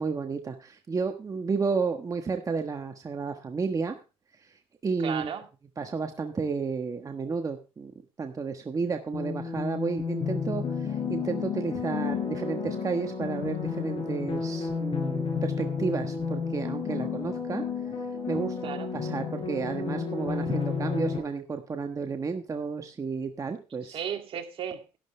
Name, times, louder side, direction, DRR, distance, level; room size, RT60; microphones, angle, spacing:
voice 1, 0.0-4.0 4.4-5.3 5.8-7.9 8.2-17.6 18.3-24.0, right 4 dB, 30° right, 1.3 m, -32 dB
voice 2, 5.0-5.4 17.0-17.2 18.6-18.9 23.8-25.0, right 8 dB, 60° right, 2.2 m, -35 dB
sound 1, 9.1-21.2, left 5 dB, 50° left, 6.2 m, -31 dB
12.0 x 11.5 x 3.3 m
cardioid pair, 90°, 11 cm